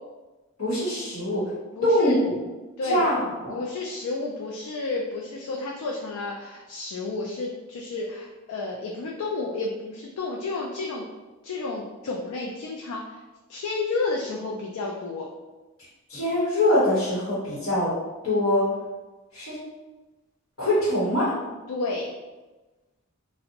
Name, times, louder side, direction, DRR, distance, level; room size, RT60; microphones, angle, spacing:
voice 1, 0.6-1.4 1.8-2.3 2.8-3.5 16.1-17.9 18.2-18.6 19.3-19.6 20.6-21.3, left 1 dB, 70° left, -9 dB, 0.9 m, -23 dB
voice 2, 1.8-2.2 2.8-3.0 3.5-11.0 11.4-13.2 13.5-15.3 21.7-22.1, left 3 dB, 90° left, -1 dB, 0.3 m, -31 dB
2.5 x 2.0 x 2.7 m, 1.2 s
head